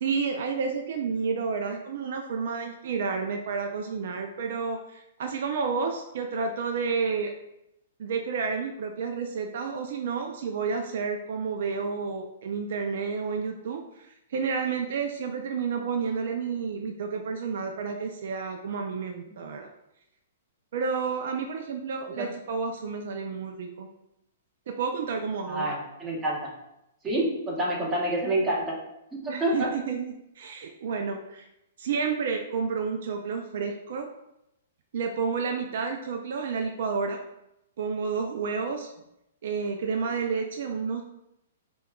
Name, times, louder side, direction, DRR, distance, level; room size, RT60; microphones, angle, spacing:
voice 1, 0.0-7.3 8.0-19.7 20.7-23.9 24.7-25.7 29.3-31.5 31.8-34.1 34.9-37.2 37.8-38.9 39.4-41.0, right 5 dB, 65° right, 4 dB, 0.3 m, -30 dB
voice 2, 25.5-26.5 27.0-28.7 29.1-29.7, right 1 dB, 20° right, -4 dB, 1.0 m, -28 dB
5.1 x 2.3 x 2.3 m, 0.85 s
hypercardioid pair, 140°, 0 cm